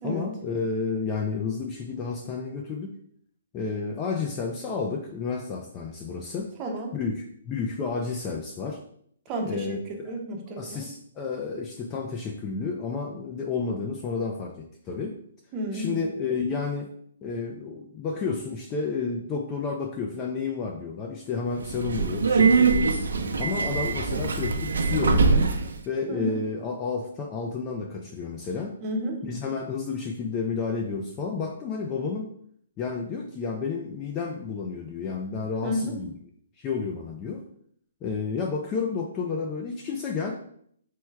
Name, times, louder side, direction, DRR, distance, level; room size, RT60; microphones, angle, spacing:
voice 1, 0.0-2.9 3.5-6.5 6.9-8.8 9.5-10.2 10.6-15.1 15.7-16.9 17.2-23.0 23.4-25.5 25.9-28.7 29.2-32.3 32.8-36.1 36.6-37.4 38.0-40.3, left 5 dB, 15° left, 2 dB, 0.3 m, -31 dB
voice 2, 6.6-6.9 9.3-9.8 10.0-10.9 15.5-16.0 26.1-26.4 28.8-29.2 35.6-36.0, equal, 20° right, 1 dB, 0.6 m, -31 dB
Subway metro underground, 21.5-25.8, right 4 dB, 85° right, 0.6 m, -23 dB
4.5 x 2.1 x 4.6 m, 0.65 s
hypercardioid pair, 170°, 0 cm